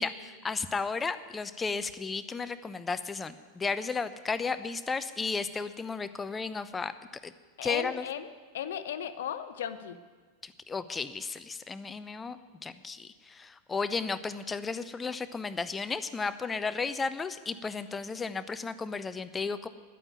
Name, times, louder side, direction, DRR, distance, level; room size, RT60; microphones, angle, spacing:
voice 1, 0.0-6.9 7.2-7.3 7.6-8.1 10.4-12.4 12.6-19.7, left 4 dB, 15° left, 12 dB, 0.7 m, -34 dB
voice 2, 7.6-8.3 8.5-10.0, left 9 dB, 60° left, 11 dB, 0.8 m, -36 dB
11.0 x 8.9 x 9.4 m, 1.4 s
figure-of-eight pair, 85°, 0 cm